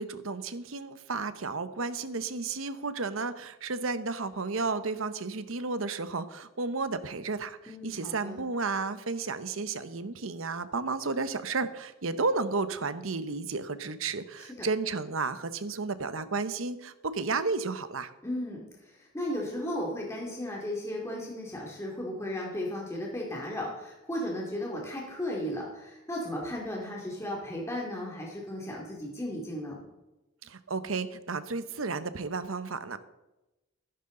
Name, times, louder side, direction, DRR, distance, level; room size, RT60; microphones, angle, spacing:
voice 1, 0.0-18.1 30.4-33.0, right 4 dB, 75° right, 12 dB, 0.9 m, -32 dB
voice 2, 7.7-8.4 14.4-14.7 18.2-29.8, left 1 dB, 15° left, -3 dB, 2.4 m, -35 dB
15.0 x 11.5 x 3.8 m, 0.98 s
head